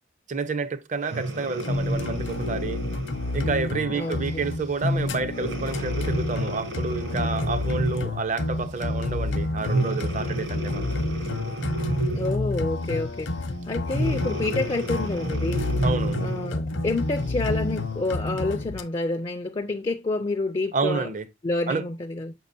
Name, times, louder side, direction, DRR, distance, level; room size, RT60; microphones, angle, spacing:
voice 1, 0.3-2.8 3.3-11.0 15.8-16.2 20.7-21.2 21.7-21.9, right 4 dB, 40° right, 0.5 m, -29 dB
Breathing, 1.0-3.6 4.3-4.5 5.3-8.2 9.6-12.5 13.9-16.6 17.2-17.3, right 2 dB, 80° right, 3.0 m, -31 dB
sound 1, 1.6-18.8, left 2 dB, 70° left, 0.7 m, -29 dB
voice 2, 3.9-4.4 12.1-15.7 16.2-21.1 21.4-22.3, left 2 dB, 25° left, 0.4 m, -28 dB
6.7 x 5.4 x 2.6 m
head